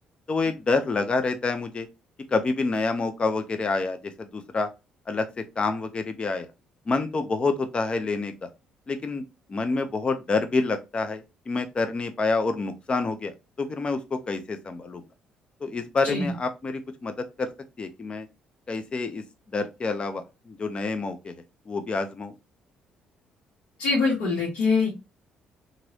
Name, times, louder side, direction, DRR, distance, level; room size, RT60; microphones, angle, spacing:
voice 1, 0.3-1.9 2.3-4.7 5.1-6.5 6.9-8.5 8.9-9.2 9.5-15.0 15.6-17.5 17.8-18.3 18.7-21.3 21.7-22.3, left 3 dB, 35° left, 0.6 m, -28 dB
voice 2, 23.8-24.9, left 4 dB, 75° left, 1.3 m, -23 dB
3.0 x 2.6 x 2.8 m
supercardioid pair, 70°, 3 cm